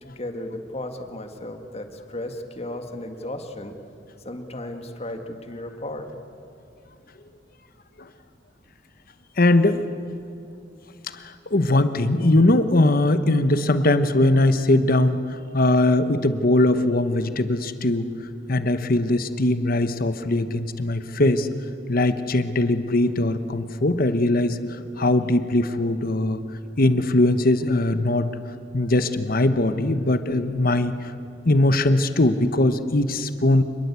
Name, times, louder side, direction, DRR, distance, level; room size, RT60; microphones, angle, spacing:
voice 1, 0.0-3.8 4.2-6.1, left 1 dB, 35° left, 6 dB, 1.9 m, -35 dB
voice 2, 9.4-9.8 11.2-18.1 18.5-21.5 21.9-24.6 25.0-26.4 26.8-28.3 28.7-30.9 31.4-33.6, left 2 dB, 55° left, 11 dB, 1.1 m, -20 dB
26.5 x 21.0 x 8.4 m, 2.5 s
head